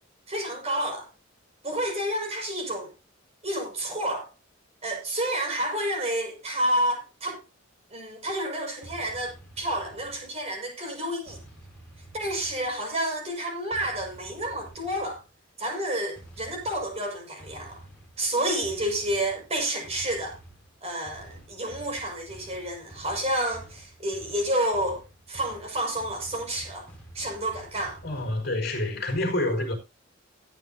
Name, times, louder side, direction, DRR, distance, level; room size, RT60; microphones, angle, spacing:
voice 1, 0.3-1.1 1.6-2.9 3.4-4.3 4.8-7.4 7.9-11.4 12.1-15.2 15.6-17.8 18.2-20.4 20.8-26.9 27.1-28.0, right 1 dB, 30° right, 5.8 m, -30 dB
sound 1, 8.8-10.6 11.3-13.0 13.7-15.3 16.1-28.4, right 1 dB, 5° left, 7.1 m, -49 dB
voice 2, 28.0-29.7, left 1 dB, 50° left, 5.4 m, -27 dB
19.5 x 9.1 x 2.8 m
head